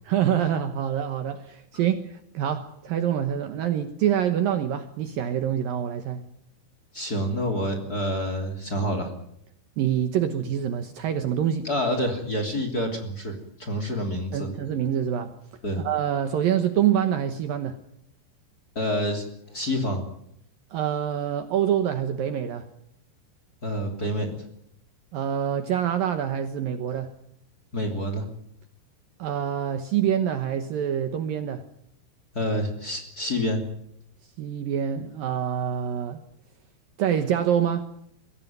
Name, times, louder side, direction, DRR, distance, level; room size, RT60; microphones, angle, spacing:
voice 1, 0.1-6.2 9.8-11.7 14.3-15.3 15.7-17.8 20.7-22.7 25.1-27.1 29.2-31.6 34.4-36.2 37.0-37.9, right 9 dB, 70° right, 9 dB, 2.5 m, -26 dB
voice 2, 6.9-9.1 11.6-14.5 15.6-15.8 18.7-20.0 23.6-24.4 27.7-28.2 32.3-33.6, equal, 25° left, 5 dB, 2.9 m, -28 dB
23.0 x 16.5 x 9.2 m, 0.74 s
omnidirectional pair, 5.1 m